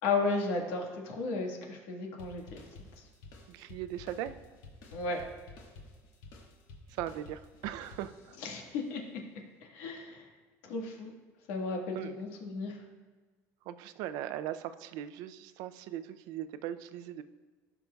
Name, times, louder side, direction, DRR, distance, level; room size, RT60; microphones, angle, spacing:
voice 1, 0.0-2.6 3.0-3.1 4.9-5.2 8.4-9.2 9.6-10.2 10.6-11.1 11.5-12.8, left 3 dB, 85° left, 1 dB, 1.6 m, -34 dB
sound 1, 2.2-8.6, left 3 dB, 65° left, 1.5 m, -52 dB
voice 2, 3.5-4.3 6.9-8.4 11.9-12.2 13.7-17.2, right 11 dB, 70° right, 12 dB, 0.5 m, -39 dB
16.5 x 5.9 x 2.3 m, 1.4 s
cardioid pair, 135°, 7 cm